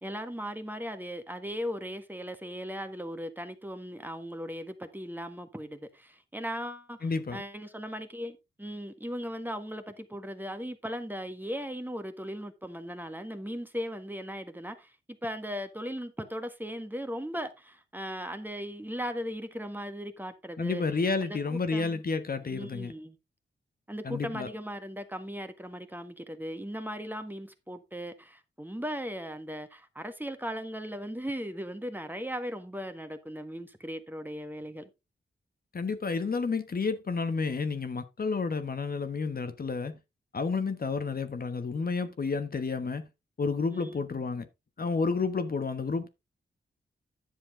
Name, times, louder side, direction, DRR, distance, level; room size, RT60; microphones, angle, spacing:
voice 1, 0.0-15.0 15.2-20.8 21.2-22.0 22.5-23.2 23.9-34.9 43.7-44.0, equal, 10° right, 1.5 m, -38 dB
voice 2, 7.0-7.4 20.6-22.9 24.0-24.5 35.7-40.0 40.3-43.1 43.4-44.5 44.8-46.1, left 4 dB, 50° left, 1.3 m, -30 dB
10.5 x 7.1 x 3.7 m
wide cardioid pair, 85°, 20 cm